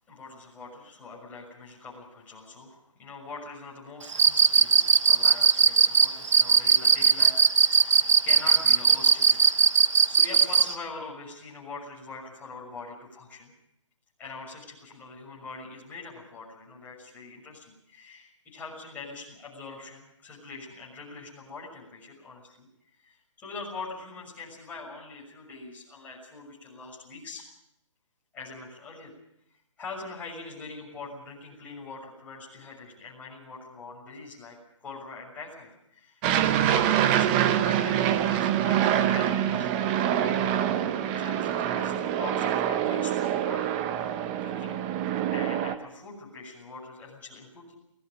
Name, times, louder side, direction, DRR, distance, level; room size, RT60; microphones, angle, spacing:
voice 1, 0.1-9.8 10.1-13.5 14.2-22.7 23.0-27.4 28.3-29.1 29.8-36.3 36.6-44.9 45.3-47.7, left 3 dB, 10° left, -4 dB, 6.4 m, -43 dB
Cricket, 4.1-10.7, right 6 dB, 60° right, 1.2 m, -18 dB
Aircraft, 36.2-45.7, right 10 dB, 20° right, 0.9 m, -25 dB
29.5 x 18.5 x 5.2 m, 0.78 s
hypercardioid pair, 155°, 17 cm